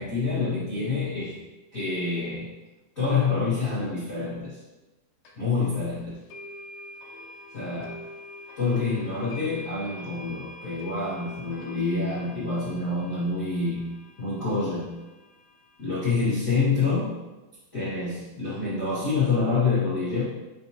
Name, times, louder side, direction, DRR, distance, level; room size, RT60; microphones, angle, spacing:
voice 1, 0.0-1.4 1.7-2.5 2.9-4.6 5.3-6.2 7.5-8.0 8.5-13.8 14.2-14.9 15.8-17.1 17.7-20.2, left 4 dB, 70° left, -11 dB, 0.7 m, -27 dB
sound 1, 5.2-5.3 6.3-16.4, left 1 dB, 90° left, 1.6 m, -45 dB
5.9 x 5.5 x 2.9 m, 1.1 s
omnidirectional pair, 4.7 m